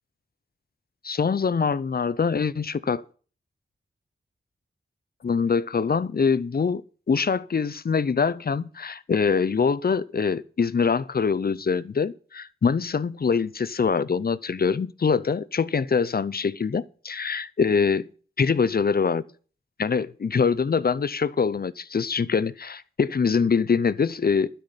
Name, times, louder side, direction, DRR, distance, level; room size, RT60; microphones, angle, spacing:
voice 1, 1.0-3.0 5.2-6.8 7.1-18.0 18.4-19.2 19.8-24.5, left 5 dB, 45° left, 0.6 m, -24 dB
12.0 x 5.8 x 8.4 m
wide cardioid pair, 100°, 21 cm